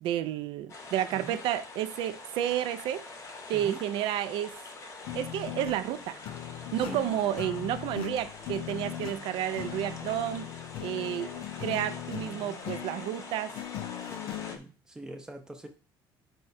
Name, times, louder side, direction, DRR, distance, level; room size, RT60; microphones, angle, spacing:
voice 1, 0.0-3.0 3.5-4.6 5.1-6.2 6.7-10.5 10.8-11.3 11.6-13.5, right 11 dB, 70° right, 0.4 m, -31 dB
sound 1, 0.7-14.6, left 3 dB, 35° left, 0.7 m, -45 dB
sound 2, 5.0-14.6, left 12 dB, 70° left, 0.4 m, -39 dB
voice 2, 12.2-12.6 14.5-15.7, right 2 dB, 10° right, 0.5 m, -43 dB
4.7 x 2.2 x 4.0 m
cardioid pair, 175°, 9 cm